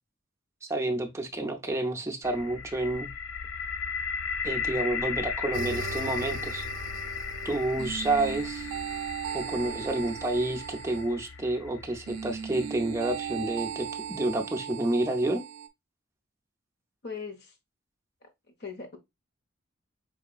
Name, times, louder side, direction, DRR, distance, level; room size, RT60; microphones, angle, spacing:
voice 1, 0.7-3.1 4.4-6.6 7.4-8.7 9.3-15.4, right 2 dB, 15° right, 0.5 m, -29 dB
sound 1, 2.2-14.1, left 6 dB, 70° left, 0.4 m, -36 dB
sound 2, 5.5-11.2 12.1-15.7, right 7 dB, 80° right, 0.4 m, -37 dB
voice 2, 17.0-17.5 18.2-19.0, left 5 dB, 50° left, 0.9 m, -40 dB
4.7 x 2.8 x 2.3 m
head